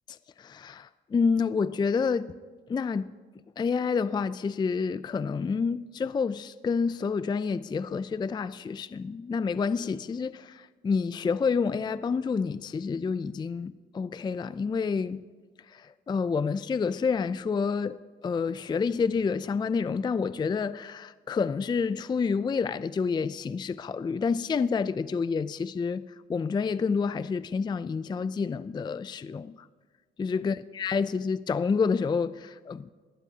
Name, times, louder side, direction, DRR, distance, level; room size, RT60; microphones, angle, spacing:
voice 1, 0.1-2.3 2.7-3.1 3.6-15.2 15.6-18.0 18.2-29.7 30.2-32.9, left 5 dB, 20° left, 0.3 m, -29 dB
20.5 x 18.5 x 2.8 m
cardioid pair, 90°, 20 cm